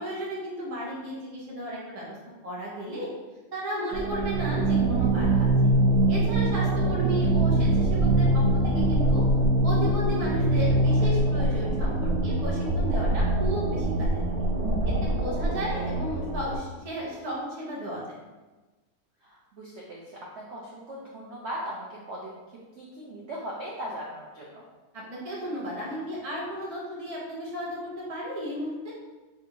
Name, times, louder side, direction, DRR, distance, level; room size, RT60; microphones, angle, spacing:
voice 1, 0.0-2.2 2.4-3.1 3.5-5.5 6.1-9.2 9.6-14.3 14.8-18.2 24.9-28.9, equal, 30° right, -5 dB, 0.8 m, -34 dB
sound 1, 3.9-16.6, right 1 dB, 80° right, 1.1 m, -23 dB
voice 2, 19.2-22.3 22.8-24.6, equal, 60° right, -5 dB, 0.7 m, -39 dB
3.5 x 2.5 x 4.4 m, 1.2 s
omnidirectional pair, 1.7 m